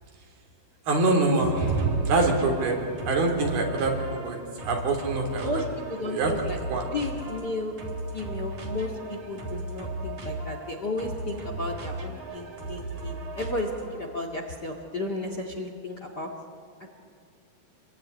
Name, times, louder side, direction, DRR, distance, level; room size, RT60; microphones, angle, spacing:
voice 1, 0.9-5.6 6.0-6.3 6.7-6.9, right 3 dB, 70° right, 2 dB, 5.3 m, -25 dB
sound 1, 1.4-14.1, right 2 dB, 50° right, 5.0 m, -36 dB
voice 2, 5.4-6.6 6.9-7.7 8.1-16.3 16.8-16.9, left 2 dB, 35° left, 3 dB, 1.8 m, -33 dB
27.0 x 22.0 x 9.9 m, 2.4 s
omnidirectional pair, 4.6 m